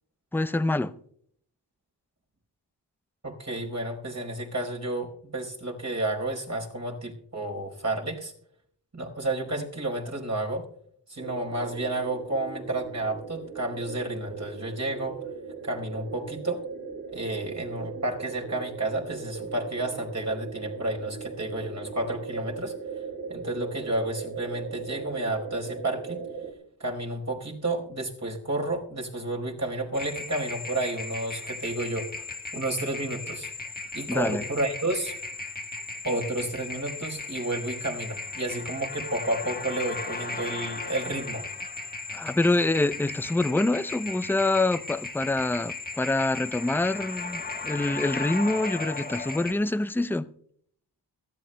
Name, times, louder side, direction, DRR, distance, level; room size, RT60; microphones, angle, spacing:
voice 1, 0.3-0.9 34.1-34.5 42.1-50.3, left 2 dB, 5° left, 0.6 m, -26 dB
voice 2, 3.2-8.3 8.9-10.6 11.1-15.2 15.6-16.6 17.1-22.7 23.3-26.2 26.8-32.1 32.5-33.5 33.9-35.1 36.0-41.5, right 2 dB, 40° right, 4.6 m, -31 dB
sound 1, 11.2-26.5, right 5 dB, 60° right, 2.5 m, -38 dB
sound 2, 29.9-49.5, left 3 dB, 20° left, 1.2 m, -36 dB
23.0 x 14.0 x 2.3 m
cardioid pair, 45°, 44 cm